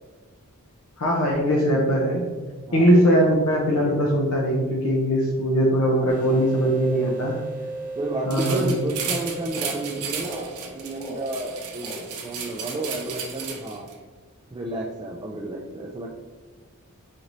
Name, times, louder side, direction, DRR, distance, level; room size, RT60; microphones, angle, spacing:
voice 1, 1.0-2.2 2.7-7.4 8.3-8.7, equal, 70° left, -2 dB, 0.6 m, -20 dB
voice 2, 2.7-3.0 6.0-7.1 8.0-13.9 14.5-16.1, right 1 dB, 20° right, -2 dB, 0.3 m, -32 dB
sound 1, 6.1-11.4, right 2 dB, 40° right, 0.9 m, -36 dB
sound 2, 8.3-13.9, right 6 dB, 85° right, 0.6 m, -34 dB
sound 3, 9.5-9.8 10.1-10.5 10.9-11.3 11.8-12.0 12.7-13.0, right 1 dB, 25° left, 0.8 m, -38 dB
5.1 x 2.6 x 3.0 m, 1.3 s
head